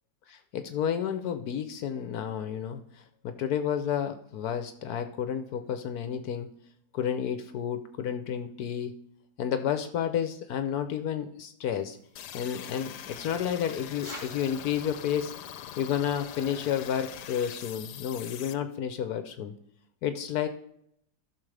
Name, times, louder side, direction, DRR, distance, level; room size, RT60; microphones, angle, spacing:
voice 1, 0.3-6.5 6.9-8.9 9.4-12.0 12.3-15.3 15.8-19.5 20.0-20.5, left 9 dB, 70° left, 9 dB, 1.1 m, -31 dB
sound 1, 11.7-16.8, equal, 15° right, 2.7 m, -51 dB
sound 2, 12.2-18.5, left 10 dB, 90° left, 1.2 m, -43 dB
14.5 x 6.3 x 3.3 m, 0.73 s
omnidirectional pair, 1.7 m